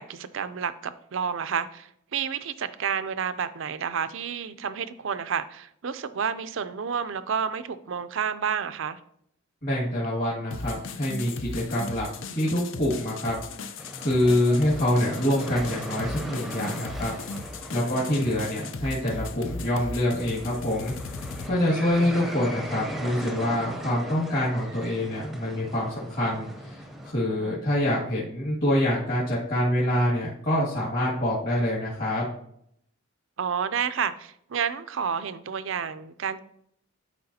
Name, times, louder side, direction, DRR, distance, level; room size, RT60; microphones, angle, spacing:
voice 1, 0.0-9.0 17.8-18.1 21.7-22.1 27.3-27.6 33.4-36.4, right 7 dB, 65° right, 13 dB, 0.4 m, -30 dB
voice 2, 9.6-12.1 12.4-13.4 14.0-17.1 17.7-20.9 21.5-32.3, left 1 dB, 40° left, -7 dB, 2.0 m, -26 dB
sound 1, 10.5-21.5, left 3 dB, 65° left, 0.5 m, -37 dB
sound 2, 13.8-27.1, equal, ahead, 0.7 m, -39 dB
11.5 x 4.5 x 2.8 m, 0.70 s
head